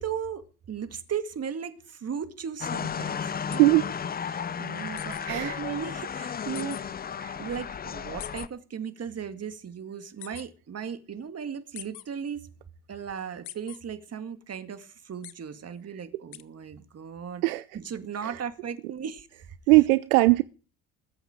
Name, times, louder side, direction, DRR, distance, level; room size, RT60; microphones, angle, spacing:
voice 1, 0.0-3.7 4.3-12.5 12.9-17.4 17.7-19.5, right 7 dB, 35° right, 2.0 m, -36 dB
sound 1, 2.6-8.5, left 7 dB, 20° left, 0.6 m, -34 dB
sound 2, 3.5-3.6 5.0-5.2 6.5-6.8 8.2-8.5 10.2-10.4 11.7-12.0 13.4-13.8 15.2-15.3 16.3-16.4, left 15 dB, 85° left, 0.8 m, -41 dB
voice 2, 5.3-5.6 7.2-7.4 17.4-17.6 18.2-18.4 19.7-20.4, right 21 dB, 75° right, 0.6 m, -20 dB
20.5 x 8.1 x 5.0 m
hypercardioid pair, 65°, 43 cm